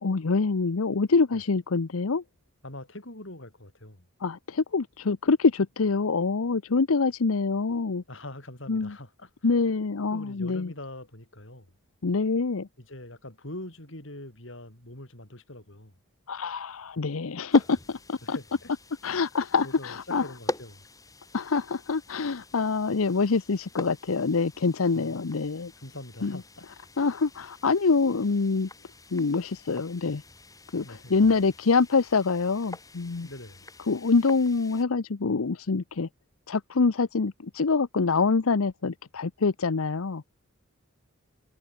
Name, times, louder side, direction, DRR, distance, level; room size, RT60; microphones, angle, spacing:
voice 1, 0.0-2.2 4.2-8.0 8.7-8.9 9.4-10.7 12.0-12.7 16.3-18.4 19.0-20.2 21.3-25.7 26.2-26.4 27.0-28.7 29.1-30.2 30.7-33.3 33.9-36.1 36.5-40.2, left 4 dB, 85° left, 0.7 m, -25 dB
voice 2, 2.6-4.1 8.1-9.3 10.1-11.7 12.8-15.9 18.2-18.7 19.6-20.9 24.9-25.2 25.8-26.7 30.8-31.4 33.2-33.6, left 1 dB, 65° left, 4.8 m, -43 dB
sound 1, 17.5-34.8, left 2 dB, 15° left, 5.1 m, -44 dB
head